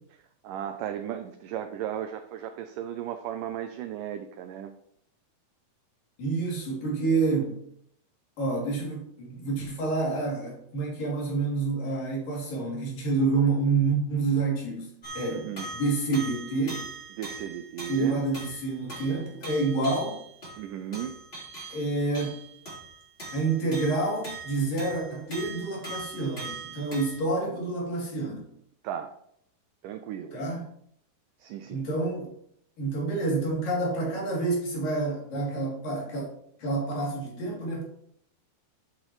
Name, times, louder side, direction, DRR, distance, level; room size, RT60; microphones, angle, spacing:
voice 1, 0.4-4.7 15.3-15.7 17.2-18.2 20.6-21.2 28.8-29.1 29.8-30.4 31.4-31.9, right 10 dB, 85° right, 8 dB, 1.8 m, -35 dB
voice 2, 6.2-7.6 8.4-15.5 15.7-16.9 17.9-20.2 21.7-22.4 23.3-28.5 30.3-30.6 31.7-32.3 32.8-36.3 36.6-37.8, right 3 dB, 60° left, -3 dB, 4.7 m, -28 dB
sound 1, 15.0-27.2, right 3 dB, 20° left, 4.2 m, -41 dB
13.5 x 7.9 x 3.2 m, 0.70 s
omnidirectional pair, 4.5 m